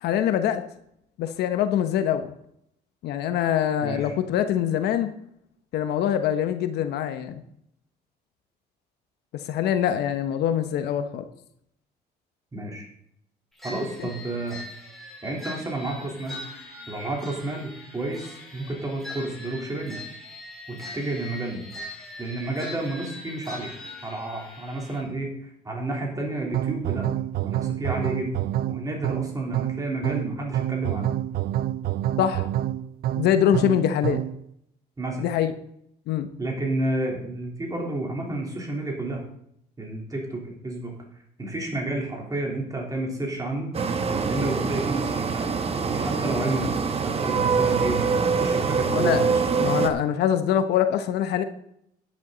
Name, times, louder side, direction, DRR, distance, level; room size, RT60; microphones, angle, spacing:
voice 1, 0.0-0.6 1.2-2.3 3.0-5.1 5.7-7.4 9.5-11.2 14.0-14.1 32.2-32.5 33.2-34.2 35.2-35.5 36.1-36.3 48.9-49.2 49.6-51.4, left 10 dB, 75° left, 8 dB, 1.0 m, -24 dB
voice 2, 3.8-4.1 12.5-12.9 13.6-14.6 15.2-16.4 16.9-20.0 20.7-21.6 22.2-23.7 24.0-27.1 27.4-31.1 35.0-35.2 36.4-39.2 39.8-40.9 41.4-43.7 44.3-45.5 45.8-49.4, right 2 dB, 20° right, -1 dB, 3.5 m, -31 dB
sound 1, 13.6-25.0, left 1 dB, ahead, 4.1 m, -41 dB
sound 2, 26.5-34.4, right 12 dB, 60° right, 0.5 m, -27 dB
sound 3, 43.7-49.9, right 5 dB, 35° right, 1.1 m, -24 dB
10.5 x 10.5 x 4.0 m, 0.73 s
cardioid pair, 110°, 17 cm